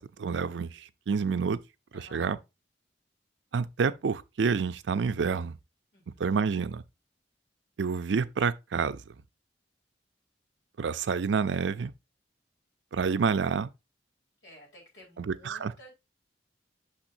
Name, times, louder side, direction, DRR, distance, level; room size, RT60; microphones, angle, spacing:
voice 1, 0.0-1.6 2.1-2.4 3.5-5.6 6.2-6.8 7.8-9.0 10.8-11.9 12.9-13.7 15.2-15.7, right 5 dB, 85° right, 0.5 m, -28 dB
voice 2, 1.9-2.4 5.9-6.3 14.4-15.9, equal, 80° left, 3.9 m, -53 dB
6.2 x 5.9 x 2.6 m
head